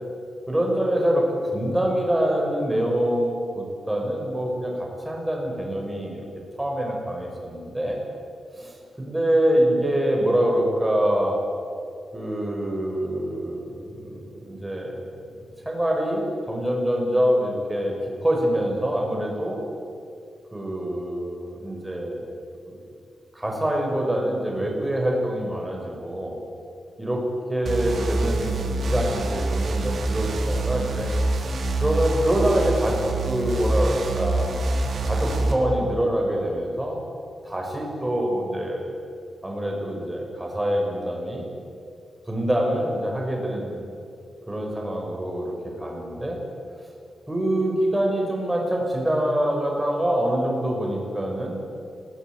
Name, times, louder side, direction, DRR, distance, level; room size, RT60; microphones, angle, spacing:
voice 1, 0.5-6.2 6.6-8.0 8.5-11.4 12.1-15.0 15.6-19.6 20.5-22.3 22.6-22.8 23.3-26.4 27.0-31.1 31.8-34.7 35.0-37.0 37.4-38.9 39.4-41.5 42.3-43.8 44.5-46.4 47.3-51.6, right 1 dB, 10° right, 0 dB, 6.4 m, -25 dB
sound 1, 27.7-35.5, right 2 dB, 55° right, 3.9 m, -25 dB
27.5 x 19.5 x 9.4 m, 2.5 s
wide cardioid pair, 145°, 0 cm